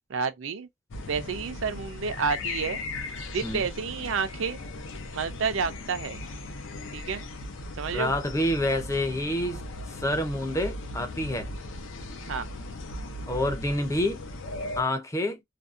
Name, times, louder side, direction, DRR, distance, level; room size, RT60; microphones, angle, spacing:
voice 1, 0.1-0.7 1.1-2.8 3.3-4.6 5.1-6.2 6.9-7.2 7.8-8.1 12.2-12.5, right 5 dB, 90° right, 0.5 m, -30 dB
sound 1, 0.9-14.8, left 2 dB, 85° left, 0.6 m, -38 dB
voice 2, 7.9-9.6 10.0-11.5 13.3-14.2 14.8-15.4, left 1 dB, 15° left, 0.5 m, -28 dB
2.6 x 2.2 x 2.4 m
head